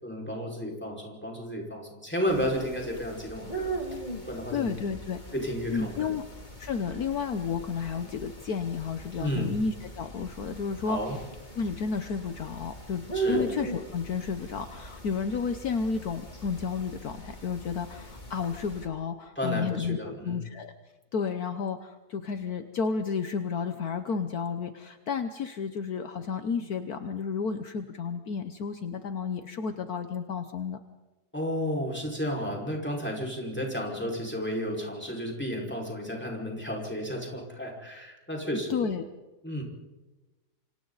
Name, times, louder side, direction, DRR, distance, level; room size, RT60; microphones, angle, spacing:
voice 1, 0.0-4.7 5.3-6.1 9.2-9.6 10.8-11.2 13.1-13.4 19.4-20.4 31.3-38.8 39.4-39.6, equal, 5° left, -1 dB, 5.2 m, -32 dB
sound 1, 2.3-18.9, right 3 dB, 25° left, 2.8 m, -40 dB
voice 2, 4.5-5.2 5.7-6.2 6.6-11.2 11.5-20.7 21.1-30.8 38.5-39.0, left 5 dB, 65° left, 8 dB, 1.5 m, -32 dB
28.0 x 26.0 x 4.1 m, 1.1 s
omnidirectional pair, 1.8 m